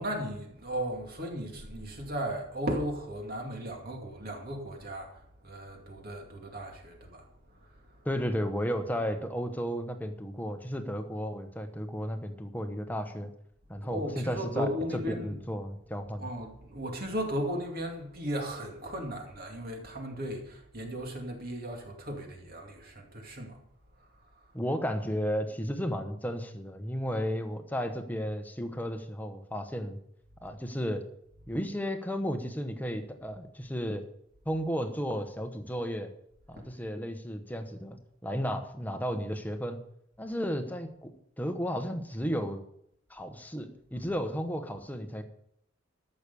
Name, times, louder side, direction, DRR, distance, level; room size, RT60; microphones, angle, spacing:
voice 1, 0.0-8.1 13.8-15.4 16.2-23.6 24.0-24.5 36.6-36.7, equal, 50° right, 2.4 m, -36 dB
voice 2, 8.0-13.3 13.7-14.7 15.1-16.2 24.5-30.0 30.4-31.0 31.5-34.0 34.4-36.1 36.5-38.0 38.2-39.8 40.2-41.1 41.4-42.6 43.1-45.2, equal, 10° left, 1.0 m, -33 dB
13.5 x 6.6 x 6.9 m
head